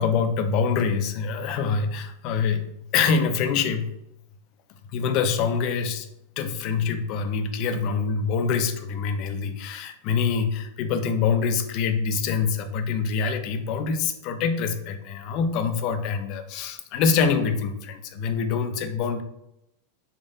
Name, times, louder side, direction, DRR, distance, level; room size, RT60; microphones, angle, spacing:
voice 1, 0.0-2.7 2.9-3.9 4.9-6.1 6.4-19.2, left 5 dB, 40° left, 7 dB, 0.3 m, -25 dB
3.2 x 2.1 x 2.5 m, 0.81 s
figure-of-eight pair, 90°, 0 cm